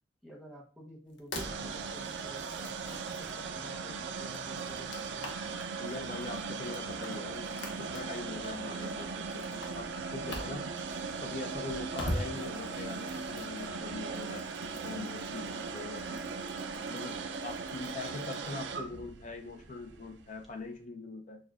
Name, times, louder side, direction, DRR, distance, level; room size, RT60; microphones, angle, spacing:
voice 1, 0.2-5.3, equal, ahead, -2 dB, 0.8 m, -52 dB
sound 1, 1.1-3.5 4.1-18.6, left 1 dB, 80° left, 0.8 m, -45 dB
sound 2, 1.3-20.5, right 5 dB, 75° right, 0.4 m, -39 dB
voice 2, 5.8-10.7 11.2-16.2 16.9-17.1 17.4-21.4, left 3 dB, 45° left, 4 dB, 0.6 m, -42 dB
6.3 x 2.4 x 2.4 m, 0.39 s
head